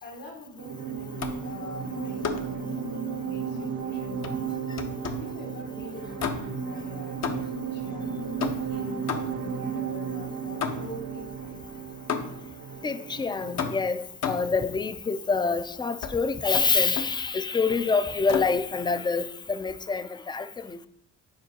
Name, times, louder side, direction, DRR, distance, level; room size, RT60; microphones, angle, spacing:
voice 1, 0.0-2.9 3.2-4.5 5.0-7.4 7.7-8.2 8.7-11.9, left 1 dB, 80° left, 1.8 m, -43 dB
sound 1, 0.6-13.9, right 6 dB, 80° right, 0.9 m, -34 dB
sound 2, 1.2-1.6 2.2-2.6 4.2-5.4 6.2-6.7 7.2-7.7 8.4-9.6 10.6-11.1 12.1-12.6 13.6-14.6 16.0-16.2 16.5-17.2 18.3-18.6, left 6 dB, 55° left, 0.7 m, -33 dB
voice 2, 12.8-20.9, left 4 dB, 15° left, 0.3 m, -26 dB
7.8 x 4.5 x 2.8 m
cardioid pair, 75°, 32 cm